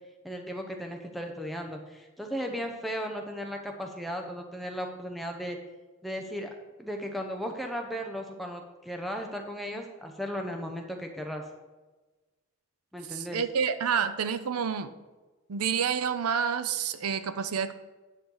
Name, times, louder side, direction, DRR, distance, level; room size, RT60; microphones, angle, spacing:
voice 1, 0.2-5.6 6.0-11.4 12.9-13.4, equal, ahead, 2 dB, 0.7 m, -36 dB
voice 2, 13.1-14.9 15.5-17.7, right 7 dB, 90° right, 12 dB, 0.5 m, -29 dB
9.9 x 6.5 x 3.9 m, 1.2 s
head